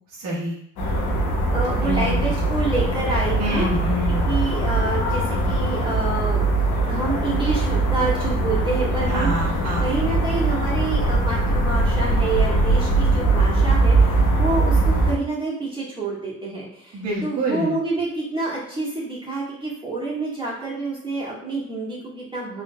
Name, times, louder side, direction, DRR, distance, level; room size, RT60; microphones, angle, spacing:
voice 1, 0.2-0.6 1.8-2.3 3.4-4.2 9.1-9.9 16.9-17.8, equal, 70° right, -6 dB, 1.3 m, -26 dB
sound 1, 0.8-15.1, right 2 dB, 85° left, 0.8 m, -21 dB
voice 2, 1.5-3.7 4.1-6.5 6.8-9.3 9.8-22.6, right 3 dB, 15° right, -6 dB, 1.4 m, -28 dB
3.9 x 3.4 x 2.2 m, 0.70 s
cardioid pair, 90°, 30 cm